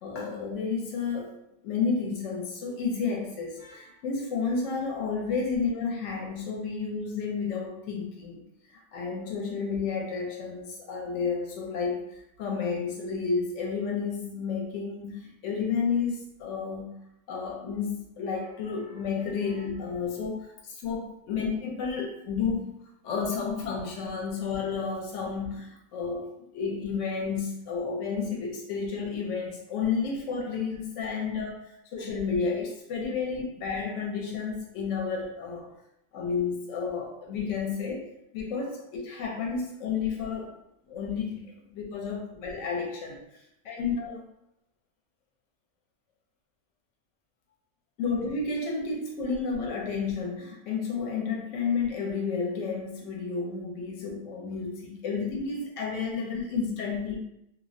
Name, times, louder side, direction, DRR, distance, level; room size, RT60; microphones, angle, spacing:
voice 1, 0.0-1.3 1.6-8.4 8.9-12.1 12.4-16.9 17.3-22.7 23.0-31.6 31.9-35.7 36.1-38.1 38.3-40.5 40.9-43.2 43.6-44.2 48.0-57.2, left 5 dB, 70° left, 0 dB, 0.9 m, -31 dB
2.4 x 2.1 x 2.5 m, 0.79 s
omnidirectional pair, 1.5 m